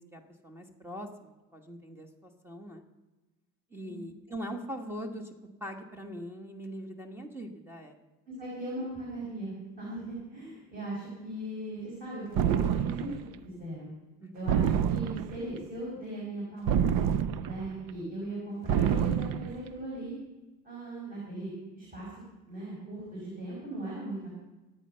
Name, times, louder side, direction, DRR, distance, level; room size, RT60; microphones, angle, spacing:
voice 1, 0.0-2.8 3.7-5.3 5.6-8.0 14.2-14.5, equal, 5° right, 5 dB, 1.3 m, -42 dB
voice 2, 8.3-13.1 13.4-13.9 14.3-17.1 17.4-20.2 20.6-21.5 21.8-22.1 22.5-24.4, right 1 dB, 25° right, -6 dB, 5.7 m, -39 dB
sound 1, 12.4-13.2 14.5-15.4 16.7-17.7 18.7-19.5, right 8 dB, 85° right, 0.8 m, -27 dB
25.5 x 8.8 x 5.6 m, 1.1 s
cardioid pair, 155°, 32 cm